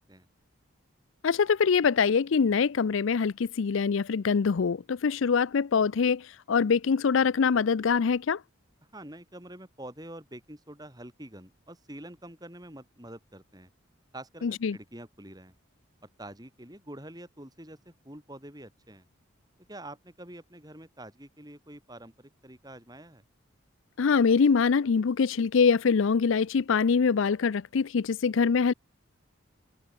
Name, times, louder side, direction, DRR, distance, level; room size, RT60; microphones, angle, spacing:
voice 1, 1.2-8.4 14.4-14.8 24.0-28.7, left 5 dB, 70° left, 0.5 m, -24 dB
voice 2, 8.9-13.7 14.1-15.5 16.2-19.1 19.7-23.2, right 1 dB, 20° right, 5.4 m, -46 dB
head